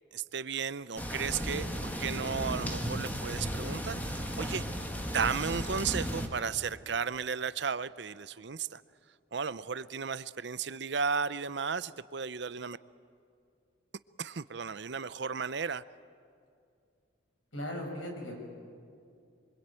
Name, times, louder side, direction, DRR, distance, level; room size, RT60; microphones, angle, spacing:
voice 1, 0.1-4.7 5.1-8.8 9.3-12.8 14.2-15.8, right 6 dB, 60° right, 15 dB, 0.6 m, -34 dB
sound 1, 1.0-6.3, equal, 10° left, 1.9 m, -35 dB
voice 2, 17.5-18.4, left 1 dB, 80° left, 1 dB, 7.3 m, -38 dB
26.0 x 24.5 x 9.0 m, 2.4 s
head